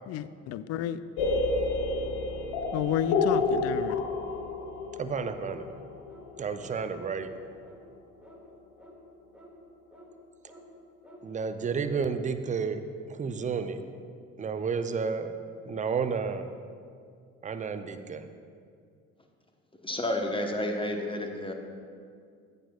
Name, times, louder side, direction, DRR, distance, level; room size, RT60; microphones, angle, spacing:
voice 1, 0.1-1.0 2.7-4.0, left 9 dB, 40° left, 14 dB, 0.4 m, -31 dB
sound 1, 1.2-6.9, left 3 dB, 65° left, 1.0 m, -30 dB
voice 2, 5.0-5.7 6.4-7.3 11.2-12.8 13.1-13.8 14.4-15.3 15.6-16.5 17.4-18.2, right 5 dB, 20° right, 10 dB, 0.5 m, -31 dB
sound 2, 6.1-6.3 6.6-6.8 7.1-7.3 7.6-7.8 8.2-8.4 8.8-8.9 9.3-9.5 9.9-10.1 10.5-10.6 11.0-11.2, equal, 5° right, 2.1 m, -52 dB
voice 3, 19.8-21.5, left 1 dB, 15° left, 3 dB, 1.1 m, -30 dB
15.0 x 6.5 x 2.4 m, 2.2 s
figure-of-eight pair, 50°, 39 cm